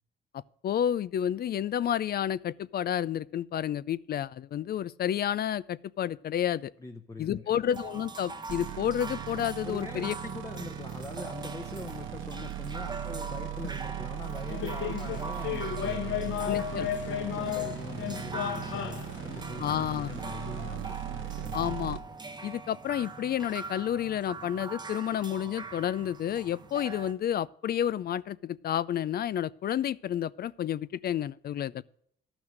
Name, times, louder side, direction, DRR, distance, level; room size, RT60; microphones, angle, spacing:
voice 1, 0.6-6.7 7.2-10.2 16.5-16.9 19.6-20.2 21.5-22.0 22.4-31.8, left 10 dB, 50° left, 0.4 m, -30 dB
voice 2, 6.8-7.6 9.6-16.6 17.1-21.8, left 3 dB, 15° left, 0.9 m, -42 dB
sound 1, 7.7-27.1, right 3 dB, 20° right, 1.0 m, -42 dB
sound 2, 8.5-22.0, right 12 dB, 80° right, 0.7 m, -39 dB
sound 3, 14.5-20.8, left 10 dB, 75° left, 0.8 m, -35 dB
12.0 x 6.0 x 6.4 m
cardioid pair, 90°, 20 cm